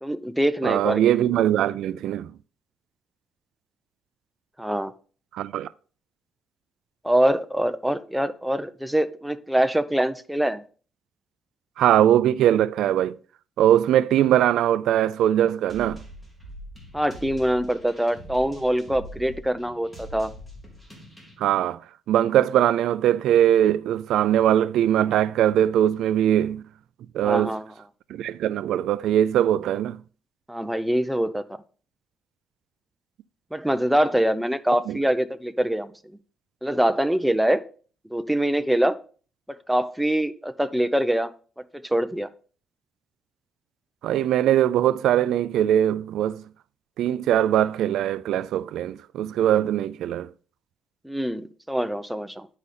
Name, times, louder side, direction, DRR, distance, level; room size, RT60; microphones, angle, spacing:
voice 1, 0.0-1.0 4.6-4.9 7.0-10.6 16.9-20.3 27.2-27.7 30.5-31.5 33.5-35.9 36.6-37.6 38.1-39.0 39.5-41.3 41.7-42.3 51.0-52.5, right 1 dB, ahead, 0.4 m, -24 dB
voice 2, 0.6-2.3 5.3-5.7 11.8-13.2 13.6-16.0 21.4-21.8 22.1-26.6 27.1-27.5 28.1-30.0 34.9-35.0 44.0-46.4 47.0-50.3, right 11 dB, 75° right, 0.3 m, -21 dB
sound 1, 15.7-21.3, equal, 15° left, 2.2 m, -43 dB
9.7 x 4.9 x 4.2 m
cardioid pair, 165°, 0 cm